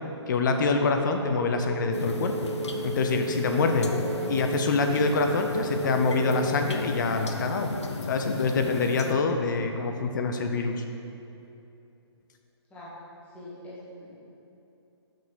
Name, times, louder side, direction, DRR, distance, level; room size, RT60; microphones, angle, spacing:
voice 1, 0.3-2.5 2.8-3.9 4.3-7.7 8.1-10.8, left 4 dB, 45° left, 5 dB, 0.6 m, -25 dB
sound 1, 1.1-6.4, right 4 dB, 30° right, 1.5 m, -35 dB
sound 2, 1.9-9.1, left 3 dB, 90° left, 0.6 m, -35 dB
voice 2, 3.6-4.5 12.7-12.9 13.3-14.2, left 1 dB, 10° left, -9 dB, 1.4 m, -41 dB
5.9 x 4.8 x 5.5 m, 2.8 s
hypercardioid pair, 150°, 14 cm